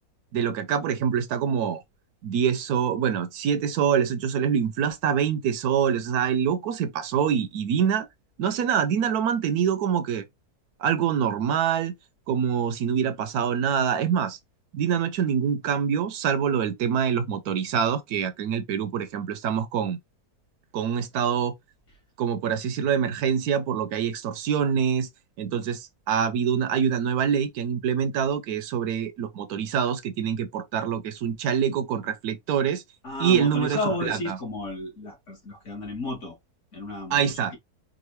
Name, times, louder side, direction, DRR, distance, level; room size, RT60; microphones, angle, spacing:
voice 1, 0.3-1.8 2.2-8.1 8.4-10.2 10.8-11.9 12.3-14.4 14.7-20.0 20.7-21.5 22.2-25.1 25.4-32.8 33.2-33.8 34.1-34.4 37.1-37.6, right 7 dB, 75° right, 1.1 m, -25 dB
voice 2, 33.0-36.4 36.7-37.6, left 2 dB, 50° left, 2.1 m, -33 dB
4.9 x 2.5 x 3.0 m
omnidirectional pair, 1.6 m